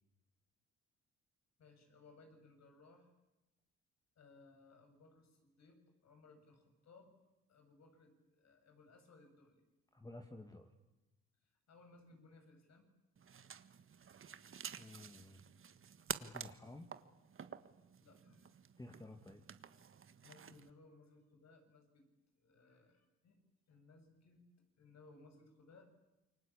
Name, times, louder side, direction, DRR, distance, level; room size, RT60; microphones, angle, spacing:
voice 1, 1.6-3.1 4.2-7.1 7.5-9.6 11.4-12.9 18.0-18.5 20.2-22.1 22.4-23.4 23.7-24.5 24.8-25.9, left 3 dB, 60° left, 5 dB, 7.7 m, -63 dB
voice 2, 9.9-10.7 14.8-15.4 16.2-16.9 18.8-19.4, left 2 dB, 10° left, 4 dB, 2.3 m, -52 dB
sound 1, 13.2-20.7, right 7 dB, 45° right, 1.6 m, -50 dB
28.0 x 24.0 x 8.8 m, 0.96 s
cardioid pair, 90°, 30 cm